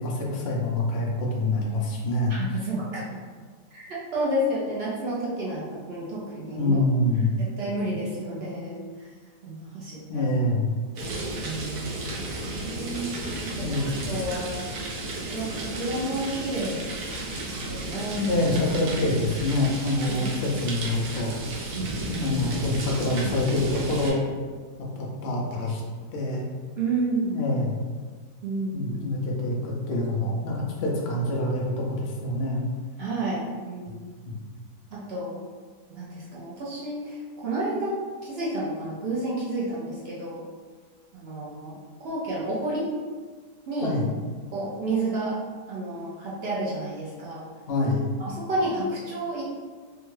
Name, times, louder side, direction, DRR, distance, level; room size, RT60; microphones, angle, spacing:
voice 1, 0.0-2.6 6.6-7.3 10.1-10.7 13.5-14.0 18.1-21.7 22.1-24.2 25.0-25.8 26.1-26.4 27.3-27.8 28.7-32.7 34.2-34.4 43.8-44.1 47.7-48.1, left 2 dB, 85° left, -2 dB, 0.5 m, -26 dB
voice 2, 2.3-3.2 3.7-6.8 7.4-9.1 9.4-10.3 11.4-12.0 12.5-13.1 13.6-13.7 14.0-14.6 15.3-16.9 17.4-18.3 20.0-20.4 21.7-22.3 26.8-27.3 28.4-28.9 33.0-34.0 34.9-35.4 35.9-40.5 41.1-42.9 43.7-44.0 44.5-45.4 45.7-47.4 48.2-49.4, right 2 dB, 70° right, -6 dB, 0.6 m, -31 dB
sound 1, 11.0-24.1, right 1 dB, 85° right, 1.3 m, -33 dB
3.4 x 2.2 x 3.1 m, 1.5 s
omnidirectional pair, 1.8 m